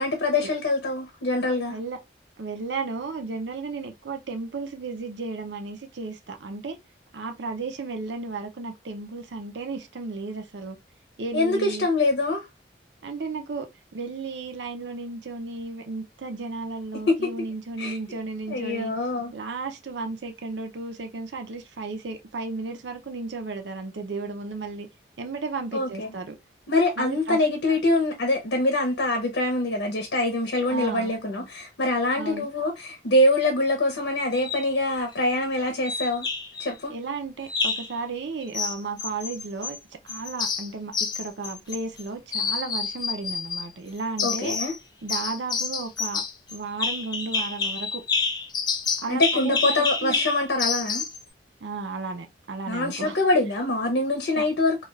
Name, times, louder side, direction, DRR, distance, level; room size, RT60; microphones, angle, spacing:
voice 1, 0.0-1.8 11.3-12.5 17.8-18.0 18.5-19.3 25.7-26.1 26.7-36.3 36.6-36.9 44.2-44.7 49.1-51.0 52.7-54.8, left 2 dB, 80° left, 0.7 m, -24 dB
voice 2, 2.4-6.8 7.1-10.8 11.2-11.9 13.0-18.9 19.3-24.9 25.2-26.4 27.0-27.4 30.7-31.1 32.1-32.5 36.9-39.8 40.0-44.6 45.0-46.2 46.5-48.0 49.0-50.2 51.6-53.2 54.4-54.5, right 3 dB, 75° right, 0.6 m, -34 dB
sound 1, 34.3-34.7 35.9-36.7 37.5-37.9 38.5-39.8 40.1-42.0 42.3-43.7 44.2-44.8 45.1-51.2, left 5 dB, 25° left, 0.3 m, -28 dB
2.4 x 2.3 x 3.2 m
head